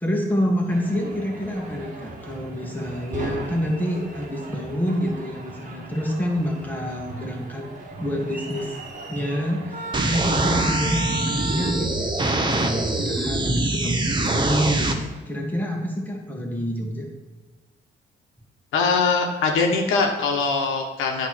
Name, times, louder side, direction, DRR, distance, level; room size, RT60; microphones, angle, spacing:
voice 1, 0.0-7.7 7.9-8.7 9.1-17.1, equal, 10° left, 0 dB, 1.7 m, -27 dB
sound 1, 0.7-11.7, right 2 dB, 40° right, 1.5 m, -36 dB
sound 2, 9.9-14.9, right 2 dB, 25° right, 0.9 m, -24 dB
voice 2, 18.7-21.3, left 4 dB, 85° left, 2 dB, 1.0 m, -22 dB
8.7 x 3.2 x 5.9 m, 1.2 s
cardioid pair, 90°, 20 cm